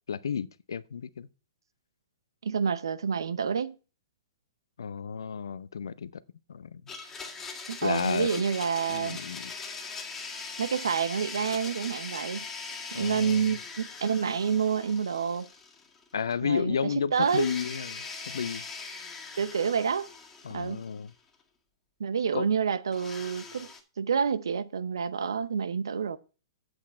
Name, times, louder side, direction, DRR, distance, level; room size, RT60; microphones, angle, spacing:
voice 1, 0.1-1.3 4.8-6.2 6.5-6.8 7.8-8.4 8.9-9.5 12.9-13.5 16.1-18.6 20.4-21.1 22.3-22.5, left 7 dB, 75° left, 0.6 m, -32 dB
voice 2, 2.4-3.8 7.7-9.2 10.6-12.4 12.9-15.5 16.4-16.8 17.1-17.5 19.3-20.1 20.5-20.8 22.0-23.7 24.0-26.2, right 6 dB, 80° right, 0.8 m, -28 dB
Domestic sounds home sounds, 6.9-16.0 16.3-16.4 17.2-21.1 22.9-23.8, left 4 dB, 15° left, 1.8 m, -41 dB
8.3 x 8.0 x 4.3 m
hypercardioid pair, 120°, 2 cm